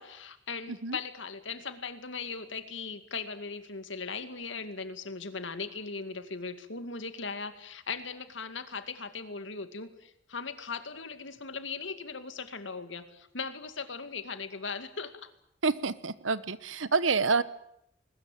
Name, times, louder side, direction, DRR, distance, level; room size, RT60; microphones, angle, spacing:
voice 1, 0.0-15.3, left 5 dB, 75° left, 9 dB, 2.2 m, -39 dB
voice 2, 15.6-17.4, right 4 dB, 90° right, 16 dB, 1.1 m, -28 dB
21.5 x 20.0 x 9.2 m, 0.76 s
head